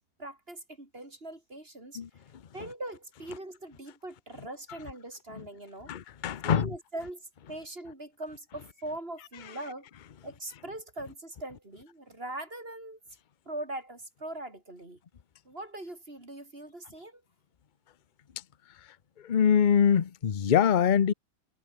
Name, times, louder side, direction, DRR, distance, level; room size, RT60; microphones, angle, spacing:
voice 1, 0.2-2.0 2.5-5.9 6.4-9.9 10.2-13.0 13.5-15.0 15.4-17.2, right 1 dB, 35° right, 4.4 m, -41 dB
voice 2, 5.9-6.7 19.2-21.1, left 8 dB, 40° left, 0.7 m, -23 dB
omnidirectional pair, 1.8 m